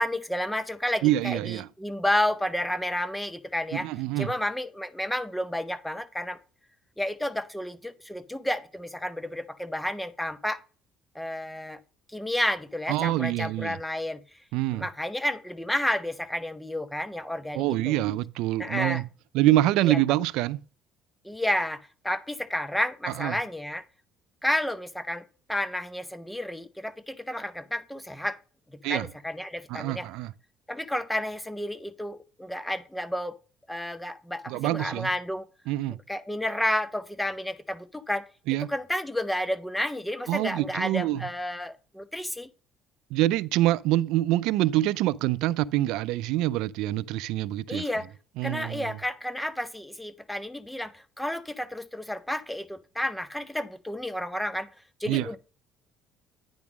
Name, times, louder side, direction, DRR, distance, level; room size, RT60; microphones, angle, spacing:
voice 1, 0.0-3.9 4.2-6.4 7.0-10.6 11.1-11.8 12.1-14.2 14.7-18.0 18.6-19.0 19.8-20.0 21.2-23.8 24.4-25.2 25.5-28.4 28.9-30.1 30.7-33.3 33.7-35.5 36.1-38.2 38.7-42.5 47.7-48.1 48.4-54.7 55.0-55.4, left 1 dB, 5° left, 0.6 m, -31 dB
voice 2, 1.0-1.7 3.7-4.3 12.9-13.8 14.5-14.9 17.5-19.1 19.3-20.6 23.1-23.4 28.8-29.1 29.7-30.3 34.5-35.1 35.7-36.0 38.5-38.7 40.3-41.3 43.1-47.8 48.4-49.0 55.1-55.3, right 15 dB, 80° right, 0.3 m, -26 dB
9.5 x 3.6 x 5.9 m
cardioid pair, 110°, 0 cm